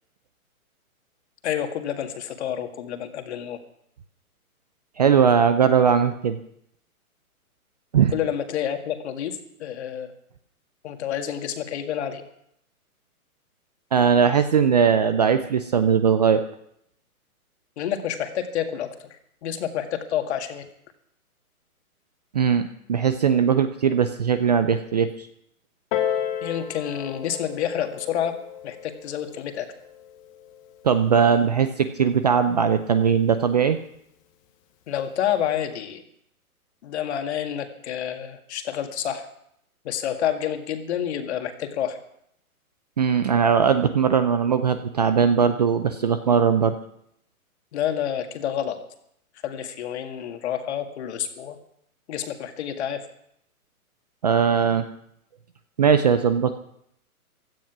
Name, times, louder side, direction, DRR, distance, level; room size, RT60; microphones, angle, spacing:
voice 1, 1.4-3.6 8.1-10.1 10.8-12.2 17.8-19.1 19.4-20.7 26.4-28.3 28.6-29.7 34.9-36.0 36.8-39.3 39.8-42.0 47.7-48.8 49.4-51.6 52.1-53.0, left 9 dB, 45° left, 6 dB, 1.9 m, -28 dB
voice 2, 5.0-6.4 7.9-8.1 13.9-16.4 22.3-25.3 30.8-33.8 43.0-46.7 54.2-54.8 55.8-56.5, right 7 dB, 30° right, 10 dB, 0.5 m, -20 dB
Piano, 25.9-31.1 31.9-32.0, left 9 dB, 25° left, 1.0 m, -33 dB
16.0 x 12.0 x 5.9 m, 0.73 s
hypercardioid pair, 150°, 44 cm